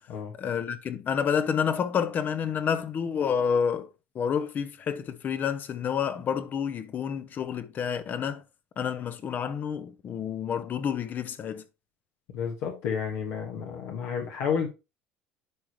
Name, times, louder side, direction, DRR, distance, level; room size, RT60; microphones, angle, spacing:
voice 1, 0.4-3.9 4.1-8.4 8.8-11.6, left 7 dB, 40° left, 0.8 m, -29 dB
voice 2, 12.3-14.7, left 7 dB, 75° left, 1.7 m, -31 dB
9.8 x 5.0 x 3.1 m
supercardioid pair, 115°, 5 cm